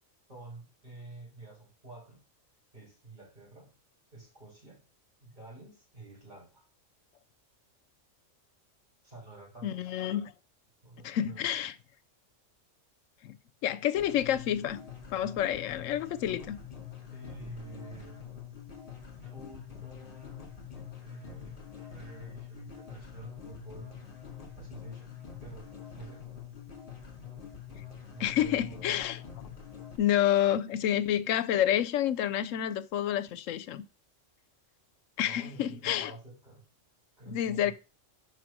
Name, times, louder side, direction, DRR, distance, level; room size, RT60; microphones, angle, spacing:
voice 1, 0.3-2.2 2.7-3.7 4.1-4.8 5.2-6.6 9.0-9.9 10.8-11.6 17.1-18.4 19.2-24.0 24.6-26.3 28.1-28.9 35.2-36.6 37.2-37.7, right 3 dB, 35° right, 5.1 m, -49 dB
voice 2, 9.6-10.3 11.0-11.7 13.2-13.4 13.6-14.8 15.1-16.6 28.2-29.2 30.0-33.8 35.2-36.2 37.3-37.7, left 11 dB, 80° left, 1.0 m, -29 dB
sound 1, 14.0-30.0, left 8 dB, 45° left, 1.8 m, -46 dB
6.3 x 4.9 x 6.1 m
omnidirectional pair, 1.3 m